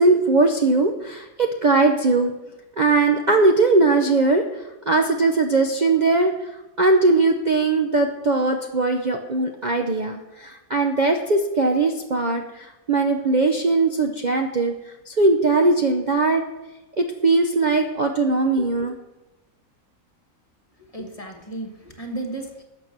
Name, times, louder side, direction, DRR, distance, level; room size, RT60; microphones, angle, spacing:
voice 1, 0.0-2.3 2.8-4.4 4.9-6.3 6.8-14.7 15.1-16.4 17.0-19.0, right 3 dB, 40° right, 3 dB, 0.7 m, -20 dB
voice 2, 20.9-22.6, right 2 dB, 25° left, 3 dB, 1.4 m, -33 dB
12.5 x 6.9 x 6.0 m, 1.0 s
omnidirectional pair, 1.5 m